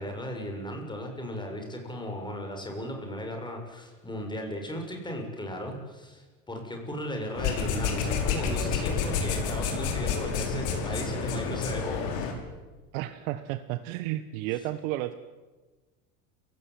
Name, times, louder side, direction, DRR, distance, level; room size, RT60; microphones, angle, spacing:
voice 1, 0.0-12.3, equal, 10° left, 3 dB, 7.2 m, -36 dB
sound 1, 7.3-12.3, left 5 dB, 60° left, 6.0 m, -29 dB
voice 2, 12.9-15.1, right 15 dB, 70° right, 10 dB, 1.4 m, -32 dB
29.5 x 17.0 x 9.4 m, 1.2 s
supercardioid pair, 110°, 41 cm